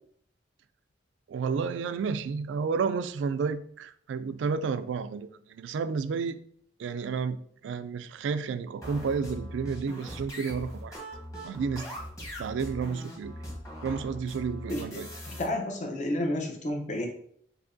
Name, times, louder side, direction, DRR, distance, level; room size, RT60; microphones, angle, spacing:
voice 1, 1.3-6.4 6.8-7.4 7.6-11.0 11.4-11.9 12.4-13.3 13.8-15.1, right 5 dB, 85° right, 0.3 m, -31 dB
sound 1, 8.8-15.4, equal, 20° left, 1.2 m, -40 dB
voice 2, 14.7-15.0 15.3-17.1, left 1 dB, 40° left, 0.7 m, -31 dB
5.9 x 2.8 x 2.6 m
head